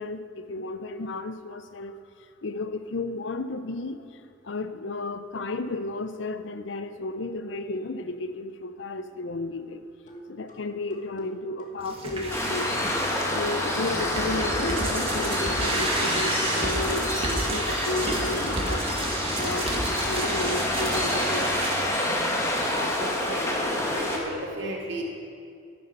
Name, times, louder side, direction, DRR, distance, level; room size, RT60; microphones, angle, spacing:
voice 1, 0.0-2.0 2.4-4.1 4.4-9.8 10.3-12.7 13.3-19.0 19.3-21.8, left 2 dB, 75° left, 10 dB, 0.6 m, -33 dB
sound 1, 10.1-16.7, equal, 40° left, 1.5 m, -43 dB
sound 2, 11.8-21.7, right 2 dB, 30° right, 1.7 m, -31 dB
Waves surf, 12.3-24.2, left 1 dB, 15° left, 1.4 m, -27 dB
voice 2, 22.9-25.0, right 1 dB, 65° right, -1 dB, 2.1 m, -35 dB
12.0 x 9.4 x 5.6 m, 2.3 s
head